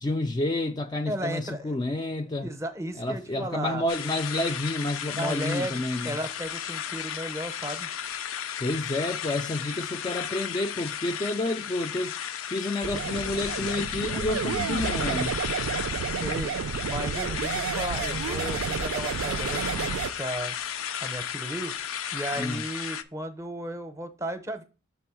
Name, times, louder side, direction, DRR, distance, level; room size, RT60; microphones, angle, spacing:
voice 1, 0.0-2.5 3.0-6.2 8.6-15.3 22.3-22.6, left 2 dB, 20° left, 0.3 m, -30 dB
voice 2, 1.1-1.8 2.4-3.8 5.2-7.9 16.2-16.5 16.9-20.6 21.0-21.7 22.1-24.6, right 1 dB, 15° right, 0.6 m, -35 dB
sound 1, 3.9-23.0, left 9 dB, 85° left, 0.5 m, -34 dB
sound 2, 12.8-20.1, right 6 dB, 85° right, 0.4 m, -31 dB
6.0 x 3.4 x 5.9 m
head